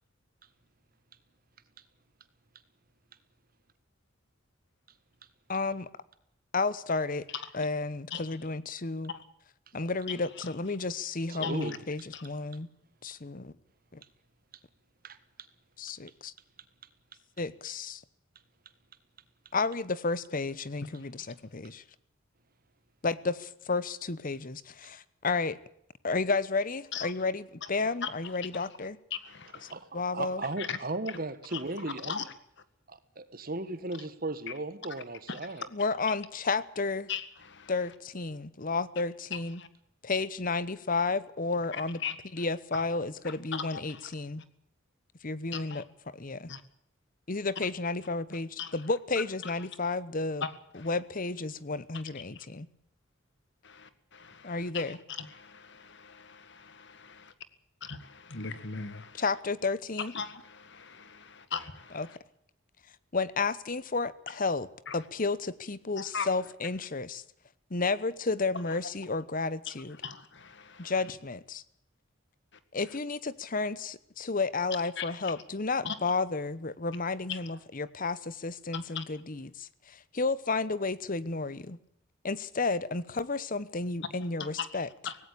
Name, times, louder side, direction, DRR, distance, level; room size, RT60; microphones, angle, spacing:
voice 1, 5.5-5.9 6.5-7.3 7.5-9.1 9.7-12.7 13.0-13.5 13.9-14.0 15.8-16.3 17.4-18.0 19.5-21.8 23.0-25.6 26.0-29.0 29.9-30.4 35.7-37.1 37.7-39.6 40.0-42.0 42.3-44.4 45.2-45.8 46.1-46.5 47.3-50.4 50.8-52.7 54.4-55.0 59.2-60.1 61.9-62.1 63.1-64.7 64.9-67.2 67.7-70.0 70.8-71.6 72.7-81.8 82.2-84.9, left 3 dB, 40° left, 1.0 m, -32 dB
voice 2, 11.3-11.8 15.0-15.2 29.7-32.2 33.4-35.7, right 2 dB, 45° right, 1.5 m, -36 dB
voice 3, 29.1-29.7 30.6-30.8 31.5-31.6 32.0-32.3 35.3-35.4 37.1-37.7 39.3-39.7 41.7-42.2 42.7-42.8 43.2-44.1 45.5-45.8 46.5-46.6 47.6-47.7 48.6-48.7 49.4-49.5 50.4-50.9 52.4-52.5 53.6-56.1 56.6-57.3 57.8-59.2 60.1-60.3 60.8-62.2 64.9-65.0 66.0-66.3 70.0-70.9 75.0-75.3 75.8-76.0 77.3-77.4 79.0-79.1 84.4-84.7 85.0-85.2, left 6 dB, 60° left, 1.8 m, -38 dB
18.0 x 17.0 x 8.5 m
head